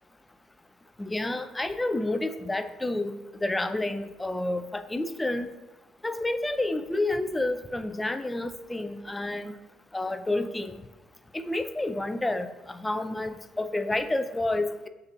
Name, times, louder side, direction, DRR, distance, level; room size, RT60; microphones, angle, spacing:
voice 1, 1.0-3.1 3.4-5.5 6.0-9.5 9.9-10.8 11.3-14.9, left 2 dB, 15° left, 10 dB, 0.3 m, -29 dB
6.5 x 2.6 x 2.5 m, 1.1 s
hypercardioid pair, 65°, 0 cm